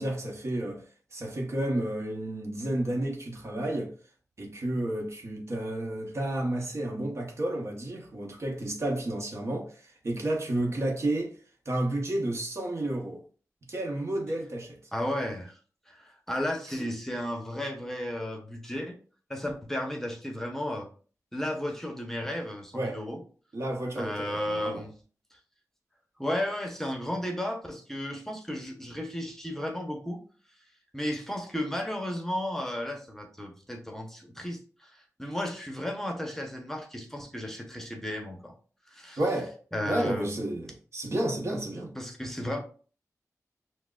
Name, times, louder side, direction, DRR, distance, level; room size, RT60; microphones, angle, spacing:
voice 1, 0.0-3.9 4.4-11.4 11.7-13.2 13.7-14.8 22.7-23.0 23.5-24.9 39.2-39.5 39.8-41.9, right 1 dB, 55° right, 0.9 m, -31 dB
voice 2, 14.9-15.6 15.9-19.0 19.3-20.9 21.3-23.2 24.0-24.9 25.3-25.4 26.2-30.2 30.9-38.5 38.9-39.2 39.7-40.3 42.0-42.6, left 1 dB, 5° left, 0.8 m, -34 dB
5.8 x 2.1 x 2.4 m
wide cardioid pair, 75°, 6 cm